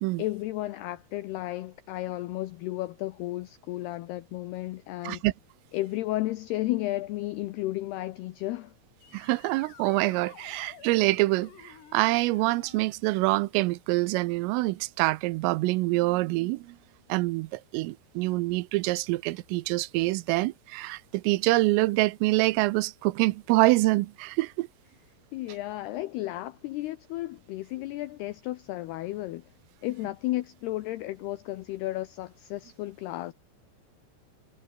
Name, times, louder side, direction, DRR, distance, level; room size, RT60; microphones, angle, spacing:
voice 1, 0.2-5.2 5.7-8.7 25.3-29.4 29.8-33.3, left 17 dB, 85° left, 2.3 m, -33 dB
sound 1, 9.0-12.8, left 8 dB, 60° left, 5.3 m, -51 dB
voice 2, 9.1-16.8 17.1-24.7, right 21 dB, 90° right, 3.4 m, -26 dB
omnidirectional pair, 5.7 m